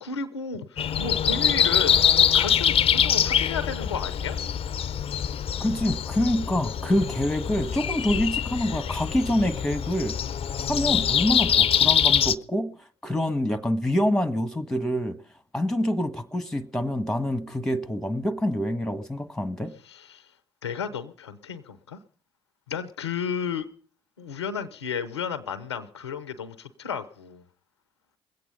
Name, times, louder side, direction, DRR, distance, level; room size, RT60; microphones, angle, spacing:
voice 1, 0.0-2.0 2.3-4.4 19.8-20.3 20.6-22.0 22.7-23.7 24.2-27.4, left 6 dB, 90° left, 0.6 m, -33 dB
Breathing, 0.8-12.4, left 8 dB, 45° left, 0.6 m, -24 dB
voice 2, 5.6-10.2 10.6-12.7 13.0-15.2 15.5-19.7, left 1 dB, 5° left, 1.4 m, -26 dB
21.0 x 8.4 x 5.5 m
hypercardioid pair, 50°, 14 cm